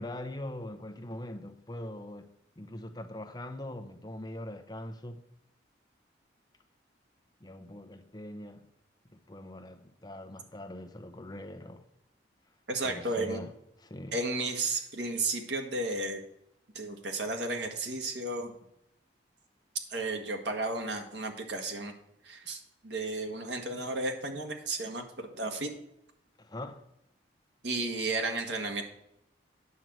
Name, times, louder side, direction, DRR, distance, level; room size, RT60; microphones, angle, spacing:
voice 1, 0.0-5.2 7.4-8.7 9.1-11.9 12.8-13.5 13.8-14.2 26.4-26.8, left 1 dB, 20° left, 0.8 m, -42 dB
voice 2, 12.7-13.4 14.1-16.2 16.7-18.5 19.9-21.9 22.2-25.7 27.6-28.8, right 2 dB, 70° right, 1.6 m, -33 dB
9.5 x 4.6 x 7.7 m
head